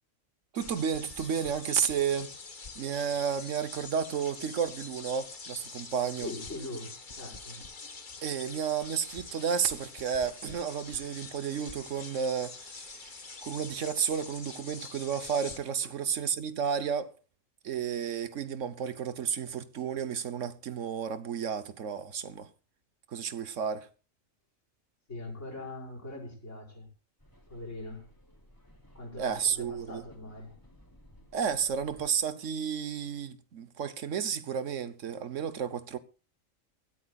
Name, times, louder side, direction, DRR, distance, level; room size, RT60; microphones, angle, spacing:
sound 1, 0.5-15.6, left 4 dB, 40° left, 1.5 m, -45 dB
voice 1, 0.5-2.3 2.8-6.3 8.2-17.1 17.6-22.5 23.1-23.9 29.2-30.0 31.3-36.0, right 7 dB, 70° right, 1.3 m, -32 dB
voice 2, 6.2-7.7 15.8-15.9 25.1-26.9 27.5-28.1 28.9-30.6, left 2 dB, 65° left, 5.8 m, -42 dB
sound 2, 27.2-32.3, equal, 15° left, 3.0 m, -57 dB
23.0 x 14.0 x 2.4 m
omnidirectional pair, 1.3 m